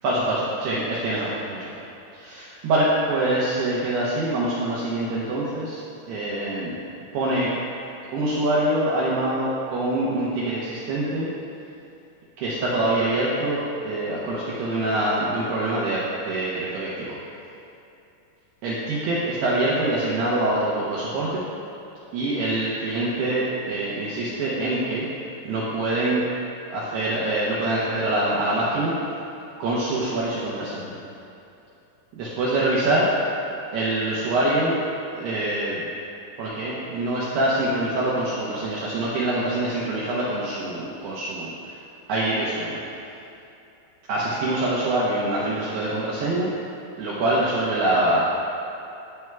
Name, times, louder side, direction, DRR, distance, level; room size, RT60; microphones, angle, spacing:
voice 1, 0.0-1.7 2.1-6.7 7.1-7.5 8.1-11.3 12.4-17.2 18.6-21.4 22.1-25.1 25.5-26.3 26.7-28.9 29.6-31.0 32.2-33.2 33.7-34.8 35.1-35.8 36.4-41.7 42.1-42.8 44.1-46.5 47.0-48.3, right 1 dB, 80° right, -7 dB, 2.4 m, -25 dB
12.5 x 8.7 x 2.3 m, 2.8 s
omnidirectional pair, 5.9 m